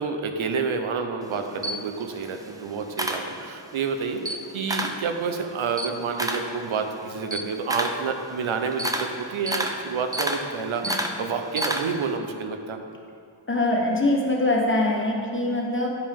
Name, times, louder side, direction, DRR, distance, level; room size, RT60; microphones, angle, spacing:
voice 1, 0.0-12.8, right 5 dB, 80° right, 5 dB, 0.7 m, -29 dB
Camera, 1.2-3.8 4.1-5.1 5.4-12.1, right 1 dB, 10° right, 0.4 m, -30 dB
voice 2, 13.5-15.9, left 2 dB, 25° left, -1 dB, 1.2 m, -23 dB
9.8 x 5.3 x 3.5 m, 2.4 s
wide cardioid pair, 105°, 48 cm